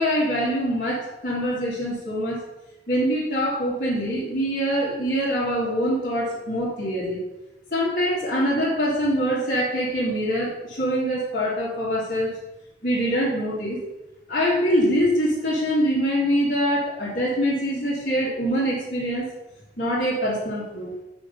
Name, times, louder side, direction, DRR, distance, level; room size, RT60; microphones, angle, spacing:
voice 1, 0.0-2.4 2.9-7.2 7.7-12.3 12.8-13.8 14.3-19.3 19.8-20.9, equal, 50° left, -8 dB, 2.1 m, -24 dB
6.3 x 5.3 x 5.3 m, 0.96 s
head